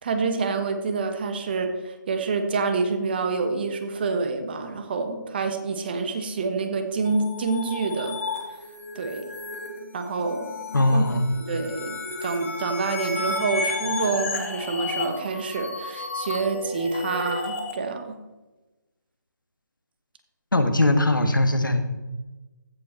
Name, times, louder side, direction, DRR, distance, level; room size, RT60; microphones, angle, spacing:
voice 1, 0.0-8.2 8.9-9.3 9.9-10.5 10.9-11.0 11.5-18.2, right 4 dB, 30° right, 7 dB, 1.2 m, -27 dB
sound 1, 7.0-17.7, left 3 dB, 45° left, 2.3 m, -33 dB
voice 2, 10.7-11.2 20.5-21.8, left 1 dB, 85° left, 7 dB, 1.4 m, -20 dB
15.0 x 5.5 x 4.4 m, 1.1 s
figure-of-eight pair, 160°, 10 cm